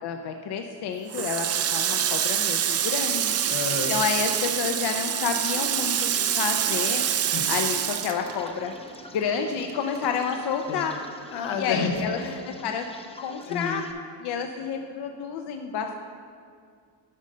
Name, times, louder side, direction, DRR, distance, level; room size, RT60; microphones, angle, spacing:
voice 1, 0.0-1.5 1.7-3.3 3.9-7.0 7.5-8.7 9.1-10.9 11.6-12.2 12.6-12.9 13.2-13.9 14.2-15.9, left 6 dB, 60° left, 5 dB, 0.6 m, -29 dB
Water tap faucet, 1.1-9.0 9.3-10.6, right 9 dB, 35° right, 0.4 m, -26 dB
voice 2, 3.5-4.0 7.3-7.5 10.7-10.9 11.3-12.5 13.5-13.8, left 5 dB, 75° left, 5 dB, 1.0 m, -30 dB
sound 1, 5.9-13.9, left 2 dB, 15° left, 0.6 m, -46 dB
8.8 x 5.2 x 5.5 m, 2.2 s
cardioid pair, 95°, 45 cm